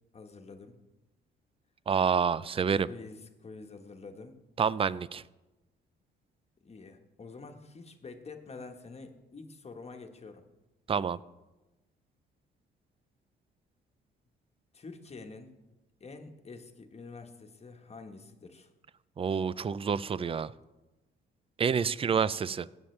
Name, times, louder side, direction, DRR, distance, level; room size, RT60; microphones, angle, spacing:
voice 1, 0.1-0.8 2.9-4.4 6.6-10.5 14.7-15.5 16.0-18.7, left 4 dB, 30° left, 5 dB, 1.3 m, -47 dB
voice 2, 1.9-2.9 4.6-5.2 10.9-11.2 19.2-20.5 21.6-22.7, right 6 dB, 30° right, 19 dB, 0.4 m, -28 dB
17.0 x 7.2 x 3.3 m, 1.1 s
cardioid pair, 90°, 20 cm